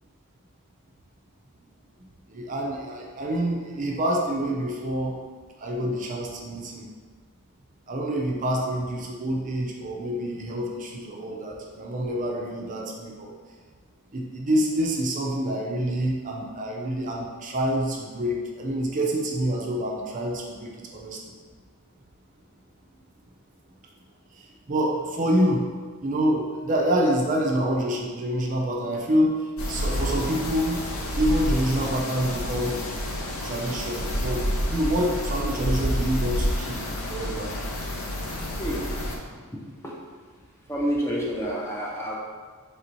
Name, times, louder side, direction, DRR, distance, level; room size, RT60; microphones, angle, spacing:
voice 1, 2.3-5.2 5.6-6.9 7.9-13.3 14.1-21.2 24.3-25.7 26.0-30.8 31.2-32.8 33.4-36.8 37.1-37.5, equal, 35° right, -1 dB, 0.5 m, -27 dB
sound 1, 29.6-39.2, equal, 75° left, 0.7 m, -29 dB
voice 2, 40.7-42.2, equal, 10° left, -3 dB, 0.5 m, -28 dB
3.4 x 2.7 x 4.4 m, 1.5 s
head